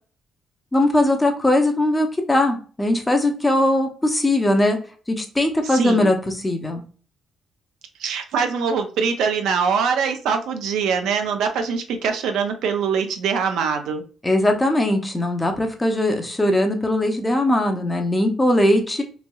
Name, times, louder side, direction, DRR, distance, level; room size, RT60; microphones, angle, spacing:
voice 1, 0.7-4.8 5.1-6.2 6.4-6.8 14.2-19.0, left 1 dB, 15° left, 4 dB, 0.6 m, -20 dB
voice 2, 5.6-6.1 8.0-14.0, right 6 dB, 85° right, 6 dB, 0.4 m, -23 dB
3.1 x 2.5 x 2.2 m, 0.39 s
cardioid pair, 90°, 0 cm